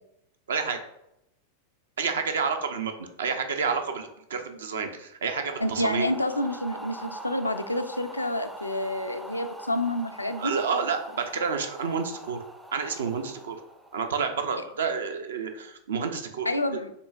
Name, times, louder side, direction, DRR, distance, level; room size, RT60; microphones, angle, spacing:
voice 1, 0.5-0.8 2.0-6.1 10.4-12.4 12.7-13.6 13.9-16.5, right 5 dB, 65° right, 6 dB, 0.5 m, -29 dB
sound 1, 5.3-14.4, right 1 dB, 5° right, 0.4 m, -43 dB
voice 2, 5.6-10.5 16.5-16.9, left 1 dB, 85° left, 8 dB, 0.3 m, -28 dB
6.6 x 2.7 x 2.4 m, 0.81 s
figure-of-eight pair, 90°, 0 cm